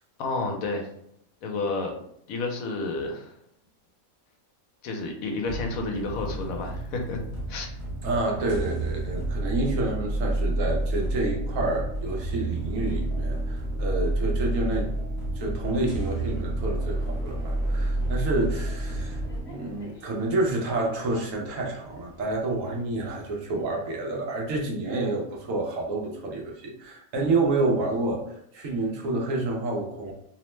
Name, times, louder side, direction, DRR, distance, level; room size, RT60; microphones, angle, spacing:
voice 1, 0.2-0.9 1.4-1.9 2.3-3.3 4.8-7.2 7.5-7.7, left 3 dB, 80° left, 2 dB, 1.0 m, -30 dB
sound 1, 5.5-19.4, right 1 dB, 15° right, 0.6 m, -29 dB
voice 2, 8.0-14.9 15.3-19.2 19.4-30.1, right 2 dB, 70° right, 0 dB, 1.0 m, -29 dB
sound 2, 16.7-24.1, left 1 dB, 30° left, 0.8 m, -47 dB
2.9 x 2.0 x 3.1 m, 0.72 s
omnidirectional pair, 1.5 m